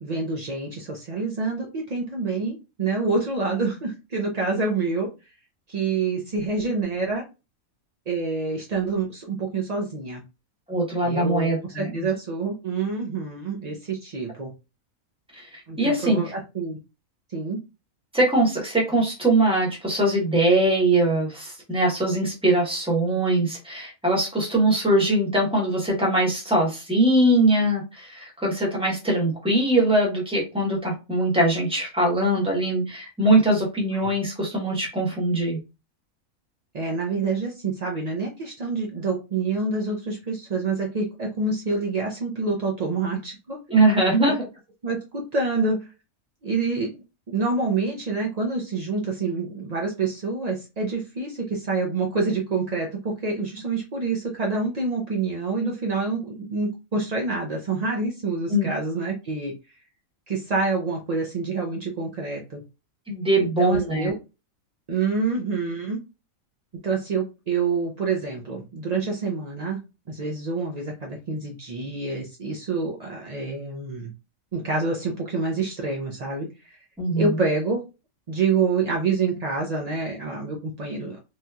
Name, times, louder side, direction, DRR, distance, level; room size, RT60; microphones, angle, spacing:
voice 1, 0.0-5.1 5.7-7.2 8.1-10.2 11.0-11.5 11.7-14.5 15.7-16.8 17.3-17.6 34.0-34.1 36.7-43.6 44.8-45.9 46.4-46.9 47.3-59.5 60.3-62.6 63.4-64.2 64.9-66.0 66.8-69.8 70.1-74.1 74.5-76.8 77.1-77.8 78.3-81.2, right 4 dB, 70° right, -1 dB, 0.3 m, -27 dB
voice 2, 10.7-12.0 15.4-16.2 18.1-35.6 43.7-44.3 58.5-58.7 63.1-64.1 77.0-77.3, right 1 dB, 5° right, -2 dB, 0.9 m, -22 dB
3.1 x 2.7 x 2.3 m, 0.28 s
omnidirectional pair, 1.5 m